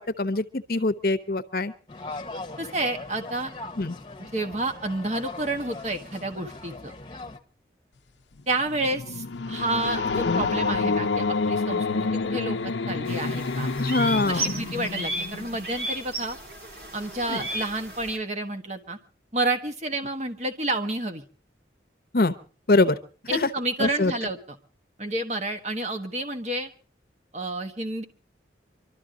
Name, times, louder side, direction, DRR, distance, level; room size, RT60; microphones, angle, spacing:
voice 1, 0.0-1.7 3.8-3.9 10.2-10.5 13.8-14.6 17.3-17.5 22.1-22.3 22.7-23.0 23.3-23.5 23.8-24.1, left 2 dB, 55° left, 10 dB, 0.8 m, -24 dB
sound 1, 1.9-7.4, left 2 dB, 25° left, 1.1 m, -40 dB
voice 2, 2.6-3.5 4.3-6.9 8.5-13.7 14.3-16.4 16.9-19.0 19.3-21.2 23.3-24.6 25.0-26.7 27.3-28.0, right 2 dB, 40° right, 6 dB, 1.4 m, -30 dB
sound 2, 8.4-15.7, left 4 dB, 80° left, 0.7 m, -28 dB
sound 3, 13.1-18.2, right 1 dB, 55° right, 3.0 m, -34 dB
24.5 x 13.0 x 3.8 m, 0.36 s
head